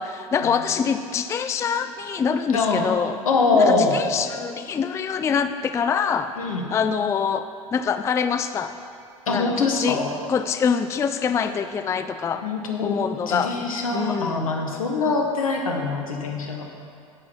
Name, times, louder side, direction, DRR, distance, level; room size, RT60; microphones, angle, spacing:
voice 1, 0.0-3.2 3.5-6.3 6.7-8.7 9.3-10.0 10.3-12.5 12.8-13.5 13.9-14.5, left 6 dB, 15° left, 10 dB, 0.3 m, -25 dB
voice 2, 2.5-2.9 3.2-4.0 6.4-6.6 9.3-10.1 12.4-13.0 13.3-16.7, left 3 dB, 75° left, 2 dB, 1.4 m, -23 dB
16.0 x 6.1 x 4.5 m, 2.4 s
figure-of-eight pair, 80°, 18 cm